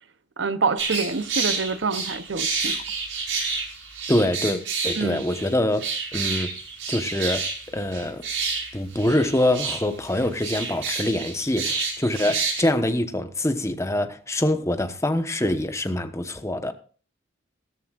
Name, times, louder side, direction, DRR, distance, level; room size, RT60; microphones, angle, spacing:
voice 1, 0.4-2.8 5.0-5.2, right 4 dB, 70° right, 0.8 m, -26 dB
sound 1, 0.8-12.6, right 4 dB, 85° right, 5.4 m, -29 dB
voice 2, 4.1-5.8 6.1-6.5 6.9-7.4 7.7-8.2 8.7-16.7, left 1 dB, 15° left, 1.1 m, -24 dB
17.0 x 14.0 x 2.5 m
head